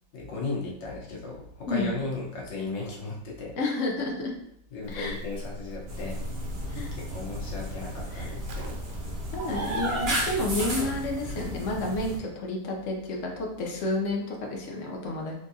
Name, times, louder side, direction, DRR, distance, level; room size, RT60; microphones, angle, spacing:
voice 1, 0.1-3.5 4.7-6.2 7.0-8.8, left 3 dB, 90° left, -3 dB, 1.7 m, -36 dB
voice 2, 3.6-4.3 4.9-5.2 6.7-6.9 8.1-8.3 9.3-15.3, left 2 dB, 60° left, 0 dB, 0.9 m, -30 dB
Livestock farm animals working animals, 4.8-10.9, left 1 dB, 70° right, 0.7 m, -40 dB
sound 1, 5.9-12.2, right 1 dB, 40° right, 1.1 m, -33 dB
3.8 x 3.5 x 2.7 m, 0.73 s
omnidirectional pair, 1.9 m